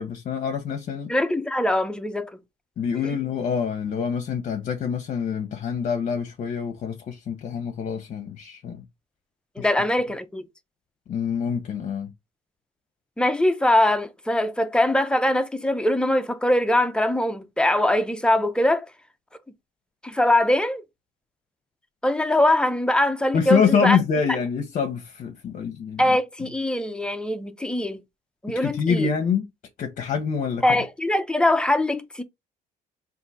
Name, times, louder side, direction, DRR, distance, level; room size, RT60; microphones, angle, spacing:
voice 1, 0.0-1.1 2.8-8.8 9.6-9.7 11.1-12.1 23.3-26.2 28.5-29.5 29.8-30.8, left 6 dB, 50° left, 0.8 m, -26 dB
voice 2, 1.1-2.3 3.0-3.2 9.6-10.4 13.2-18.9 20.0-20.8 22.0-24.0 26.0-28.0 28.4-29.1 30.6-32.2, left 1 dB, 5° left, 0.5 m, -22 dB
3.8 x 2.6 x 4.0 m
cardioid pair, 110°, 17 cm